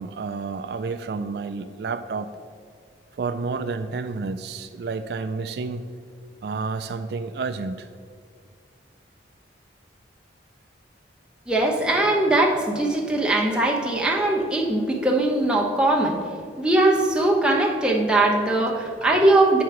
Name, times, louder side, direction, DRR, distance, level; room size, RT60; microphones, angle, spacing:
voice 1, 0.0-2.3 3.1-5.9 6.4-7.9, right 4 dB, 65° right, 9 dB, 0.3 m, -30 dB
voice 2, 11.5-16.2 16.6-19.6, right 2 dB, 5° right, -1 dB, 0.8 m, -20 dB
8.1 x 6.0 x 4.8 m, 2.1 s
head